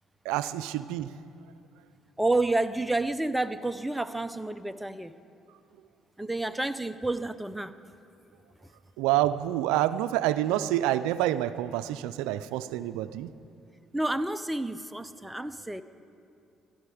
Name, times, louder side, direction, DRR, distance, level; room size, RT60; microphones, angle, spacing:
voice 1, 0.3-1.1 9.0-13.3, right 13 dB, 85° right, 14 dB, 0.3 m, -27 dB
voice 2, 2.2-5.1 6.2-7.8 13.9-15.8, right 2 dB, 5° right, 11 dB, 0.6 m, -29 dB
17.5 x 12.0 x 4.9 m, 2.5 s
supercardioid pair, 70°, 0 cm